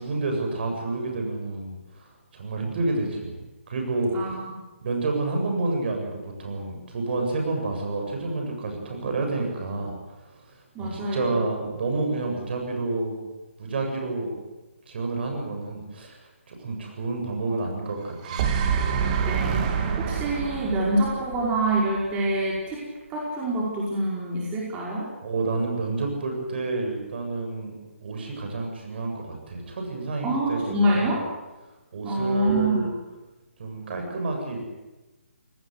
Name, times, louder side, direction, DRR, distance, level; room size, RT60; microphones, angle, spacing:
voice 1, 0.0-4.3 4.8-13.2 13.6-14.3 14.9-16.2 16.5-18.4 25.2-27.7 28.0-31.2 31.9-32.9 33.6-34.6, right 3 dB, 50° right, 2 dB, 7.7 m, -29 dB
voice 2, 10.7-11.4 19.2-22.8 23.1-25.1 30.2-31.3 32.0-32.9, right 1 dB, 15° right, -4 dB, 5.1 m, -26 dB
sound 1, 18.0-22.2, right 6 dB, 35° right, 2.8 m, -27 dB
26.0 x 19.0 x 8.2 m, 1.1 s
figure-of-eight pair, 145°, 7 cm